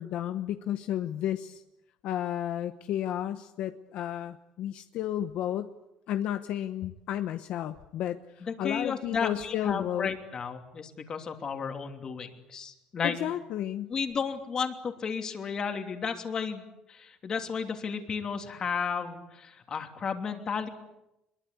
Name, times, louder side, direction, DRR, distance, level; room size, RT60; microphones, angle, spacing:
voice 1, 0.0-1.6 2.0-5.7 6.1-10.1 13.0-13.9, left 11 dB, 65° left, 9 dB, 1.0 m, -32 dB
voice 2, 8.4-13.2 13.9-16.6 16.9-20.7, left 6 dB, 35° left, 5 dB, 2.9 m, -33 dB
24.0 x 22.5 x 8.4 m, 0.89 s
cardioid pair, 150°, 2 cm